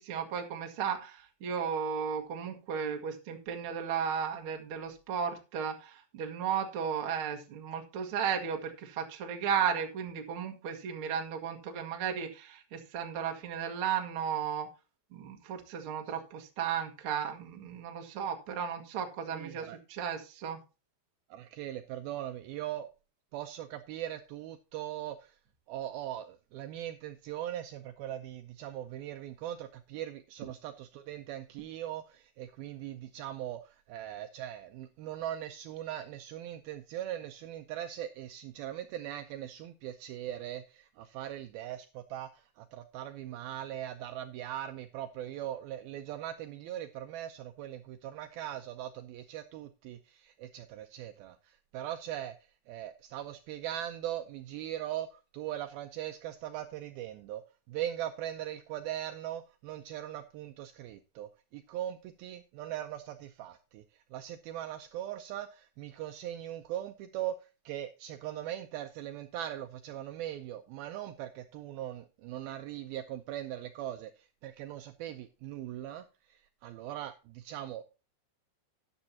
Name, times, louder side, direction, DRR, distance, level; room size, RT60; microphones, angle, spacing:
voice 1, 0.0-14.7 15.1-20.6, right 7 dB, 55° right, 1.5 m, -34 dB
voice 2, 19.3-19.8 21.3-22.9 23.3-25.4 25.7-57.4 57.7-77.8, right 12 dB, 80° right, 2.2 m, -40 dB
13.0 x 9.7 x 2.8 m
omnidirectional pair, 4.8 m